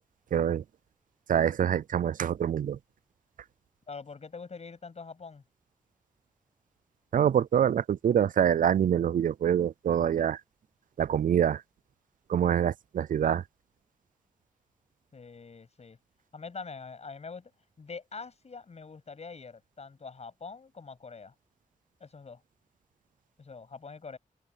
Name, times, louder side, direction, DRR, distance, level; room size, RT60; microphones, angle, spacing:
voice 1, 0.3-0.6 1.3-2.8 7.1-10.4 11.0-11.6 12.3-13.4, right 9 dB, 75° right, 0.4 m, -25 dB
voice 2, 3.9-5.4 15.1-16.0 16.3-17.5 17.8-21.3 22.0-22.4 23.4-24.2, left 4 dB, 50° left, 8.0 m, -44 dB
wide cardioid pair, 120°, 14 cm